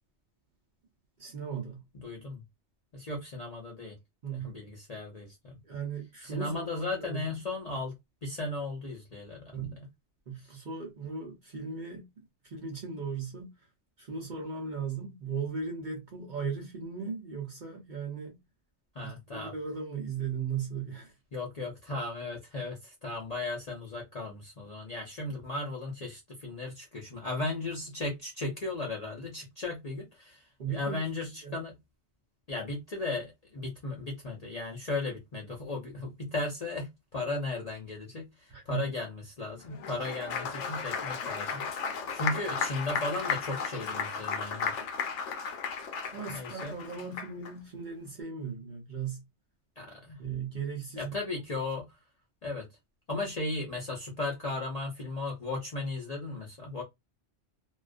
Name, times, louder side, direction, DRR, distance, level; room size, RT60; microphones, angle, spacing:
voice 1, 1.2-1.8 4.2-4.5 5.6-7.4 9.5-9.7 10.3-12.1 12.4-13.7 14.0-18.4 19.0-21.1 30.6-31.1 31.4-31.6 38.5-38.9 46.1-49.3 50.2-51.1, right 6 dB, 50° right, 0.6 m, -37 dB
voice 2, 1.9-2.4 2.9-4.0 4.3-5.6 6.2-7.9 8.2-9.8 10.4-10.5 18.9-19.5 21.3-31.8 32.5-41.7 42.1-44.8 46.3-46.8 49.8-50.2 51.0-52.0 52.4-52.7 53.1-56.8, left 2 dB, 45° left, 0.5 m, -36 dB
Applause, 39.7-47.5, left 6 dB, 75° left, 0.9 m, -34 dB
2.3 x 2.2 x 2.4 m
omnidirectional pair, 1.3 m